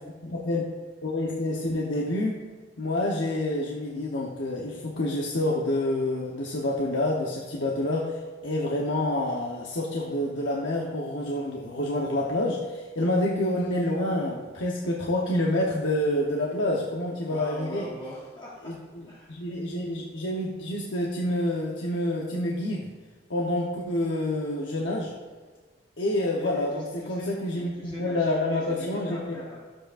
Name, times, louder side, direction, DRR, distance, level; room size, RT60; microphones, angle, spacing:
voice 1, 0.2-0.7 1.0-2.4 2.8-17.9 18.6-18.8 19.3-22.9 23.3-25.1 26.0-29.4, left 1 dB, 80° left, -2 dB, 0.9 m, -28 dB
voice 2, 17.3-18.8 19.1-19.4 26.4-29.6, left 1 dB, 25° left, -5 dB, 1.1 m, -41 dB
13.0 x 7.5 x 2.5 m, 1.4 s
head